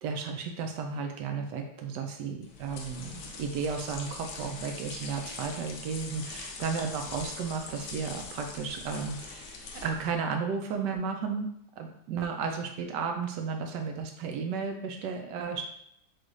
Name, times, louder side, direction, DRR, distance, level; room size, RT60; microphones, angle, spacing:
voice 1, 0.0-11.5 11.8-15.6, right 5 dB, 70° right, 4 dB, 1.1 m, -33 dB
sound 1, 2.4-10.2, left 4 dB, 80° left, 0.7 m, -42 dB
6.2 x 2.4 x 3.1 m, 0.72 s
omnidirectional pair, 2.2 m